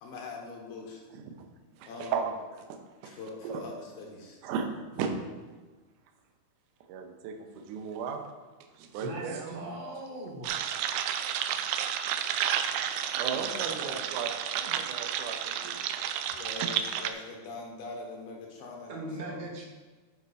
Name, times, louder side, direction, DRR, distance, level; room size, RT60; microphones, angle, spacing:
voice 1, 0.0-1.0 1.9-2.2 3.0-4.4 11.5-11.6 13.3-14.0 16.3-19.4, left 3 dB, 75° left, 0 dB, 2.8 m, -43 dB
voice 2, 1.7-2.2 3.4-3.6 4.4-5.2 6.9-8.2 8.7-9.5 12.5-12.6 13.2-16.1, right 6 dB, 70° right, 4 dB, 2.1 m, -36 dB
voice 3, 9.0-10.5 12.0-12.1 18.9-19.6, right 1 dB, 45° right, -2 dB, 1.3 m, -39 dB
sound 1, 10.4-17.1, right 9 dB, 90° right, 2.6 m, -31 dB
12.5 x 5.2 x 4.2 m, 1.3 s
omnidirectional pair, 4.5 m